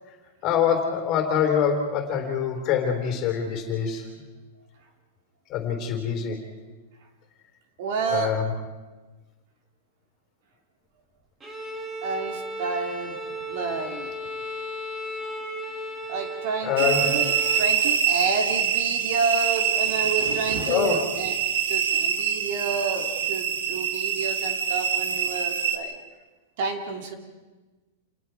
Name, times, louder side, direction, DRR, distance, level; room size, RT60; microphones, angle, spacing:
voice 1, 0.4-4.1 5.5-6.4 8.1-8.5 16.6-17.1 20.7-21.0, left 7 dB, 30° left, 3 dB, 3.6 m, -25 dB
voice 2, 7.8-8.3 12.0-13.2 13.5-14.1 16.1-21.3 21.7-26.0 26.6-27.1, right 5 dB, 50° right, 4 dB, 2.7 m, -30 dB
Bowed string instrument, 11.4-17.8, equal, 10° right, 2.1 m, -35 dB
sound 1, 16.8-25.8, right 8 dB, 80° right, 2.2 m, -25 dB
28.5 x 20.0 x 4.7 m, 1.2 s
supercardioid pair, 170°, 0 cm